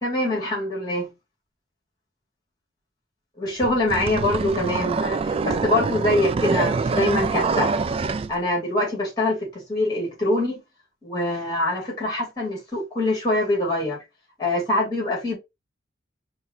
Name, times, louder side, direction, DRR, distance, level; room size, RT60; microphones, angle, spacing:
voice 1, 0.0-1.1 3.4-7.7 8.3-10.6 11.0-14.0 14.4-15.4, left 1 dB, 20° left, 2.6 m, -24 dB
sound 1, 3.6-8.3, right 4 dB, 30° right, 0.3 m, -25 dB
5.3 x 2.5 x 2.9 m
head